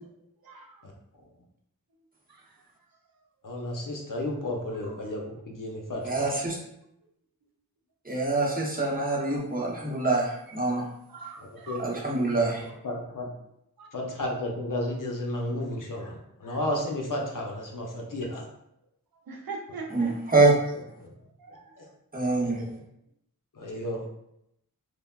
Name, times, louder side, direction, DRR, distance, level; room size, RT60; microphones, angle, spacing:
voice 1, 0.4-0.8 2.3-2.6 11.1-12.1 13.8-13.9 19.3-20.2 21.4-21.8, right 4 dB, 70° right, 1 dB, 0.5 m, -41 dB
voice 2, 3.4-6.3 11.7-11.8 12.3-13.3 13.9-18.4 21.0-21.1 21.8-21.9 22.4-22.8 23.6-24.0, left 1 dB, 60° left, -1 dB, 0.7 m, -33 dB
voice 3, 6.0-6.6 8.0-10.8 11.8-12.6 19.9-20.5 22.1-22.6, right 3 dB, 25° right, -4 dB, 0.8 m, -25 dB
3.3 x 2.1 x 2.3 m, 0.79 s
wide cardioid pair, 45°, 37 cm